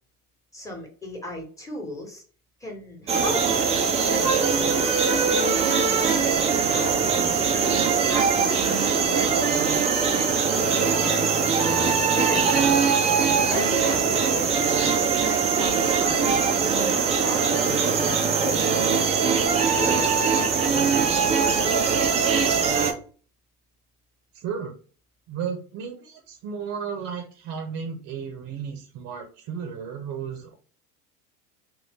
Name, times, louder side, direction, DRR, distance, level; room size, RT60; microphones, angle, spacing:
voice 1, 0.5-2.2 2.6-3.5 4.0-5.3 5.6-6.2 6.6-11.6 12.0-12.6 13.3-18.8 19.2-19.4 19.8-21.8, left 1 dB, 5° left, 0 dB, 1.2 m, -36 dB
sound 1, 3.1-22.9, right 5 dB, 15° right, 0.4 m, -22 dB
voice 2, 24.3-24.7 25.3-30.6, right 6 dB, 35° right, 4 dB, 0.8 m, -34 dB
2.6 x 2.5 x 3.5 m, 0.40 s
hypercardioid pair, 85°, 47 cm